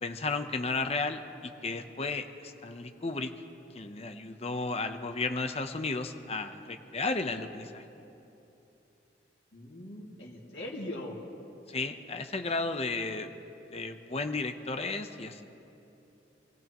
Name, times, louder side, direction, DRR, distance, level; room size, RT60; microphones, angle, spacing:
voice 1, 0.0-3.3 3.7-7.8 11.7-13.3 13.7-15.5, left 3 dB, 35° left, 7 dB, 0.8 m, -33 dB
voice 2, 9.5-11.2, left 1 dB, 80° left, -4 dB, 2.5 m, -40 dB
27.5 x 16.5 x 3.0 m, 2.9 s
head